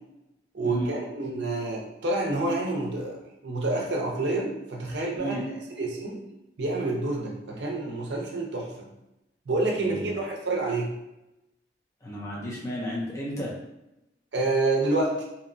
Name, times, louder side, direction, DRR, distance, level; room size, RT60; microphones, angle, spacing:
voice 1, 0.5-6.2 6.6-8.9 9.5-10.9 14.3-15.2, right 2 dB, 70° right, -1 dB, 0.5 m, -28 dB
voice 2, 9.8-10.2 12.0-13.5, equal, 15° left, -5 dB, 0.5 m, -33 dB
2.7 x 2.1 x 2.5 m, 0.90 s
head